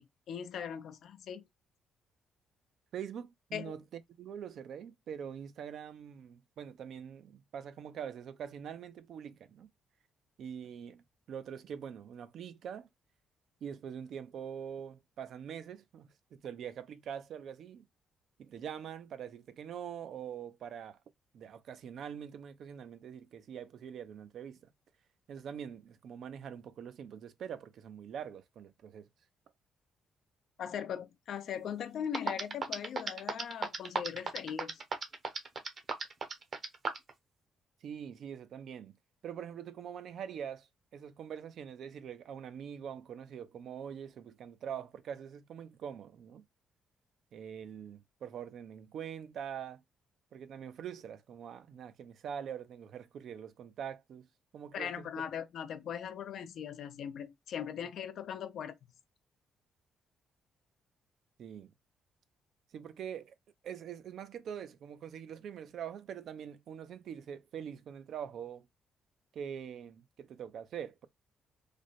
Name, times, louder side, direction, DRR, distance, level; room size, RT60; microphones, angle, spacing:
voice 1, 0.0-1.4 3.5-3.7 30.6-34.8 54.7-58.8, left 8 dB, 70° left, 0.5 m, -39 dB
voice 2, 2.9-9.7 10.4-12.9 13.6-17.9 18.4-21.0 21.3-24.7 25.3-29.1 37.8-39.0 39.2-40.7 40.9-46.4 47.3-49.8 50.3-54.3 54.5-55.1 61.4-61.7 62.7-63.4 63.6-68.7 69.3-71.1, right 8 dB, 65° right, 0.5 m, -44 dB
sound 1, 31.8-31.9 32.1-37.1, right 4 dB, 45° right, 0.8 m, -34 dB
3.2 x 2.1 x 4.0 m
cardioid pair, 90°, 0 cm